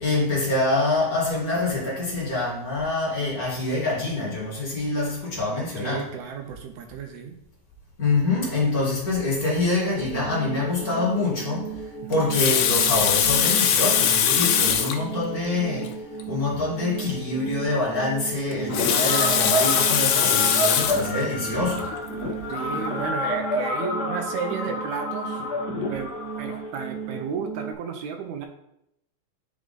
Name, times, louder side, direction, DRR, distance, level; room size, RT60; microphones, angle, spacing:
voice 1, 0.0-6.1 8.0-11.7 12.1-15.9 16.3-21.9, left 2 dB, 30° left, -6 dB, 2.0 m, -25 dB
voice 2, 5.8-7.4 12.0-12.3 22.5-25.4 25.9-28.5, right 6 dB, 75° right, 5 dB, 1.9 m, -33 dB
sound 1, 9.9-27.7, right 6 dB, 50° right, 2.2 m, -36 dB
Water tap faucet, 12.1-15.0 15.8-15.9 16.2-16.3 18.5-21.1 21.8-22.0, left 8 dB, 85° left, 2.4 m, -21 dB
sound 2, 18.7-27.2, left 1 dB, 60° left, 1.0 m, -29 dB
8.3 x 5.3 x 3.9 m, 0.78 s
omnidirectional pair, 3.8 m